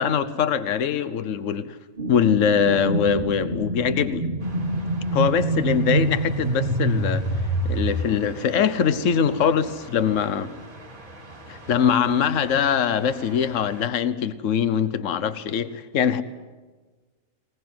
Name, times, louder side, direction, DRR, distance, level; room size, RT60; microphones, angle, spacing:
voice 1, 0.0-1.8 2.1-4.3 5.1-7.2 7.6-10.5 11.5-16.2, left 7 dB, 65° left, 12 dB, 1.3 m, -22 dB
sound 1, 2.0-7.9, right 2 dB, 35° right, 1.8 m, -26 dB
sound 2, 4.4-13.9, right 1 dB, 85° right, 4.1 m, -44 dB
21.0 x 20.5 x 9.4 m, 1.3 s
omnidirectional pair, 1.4 m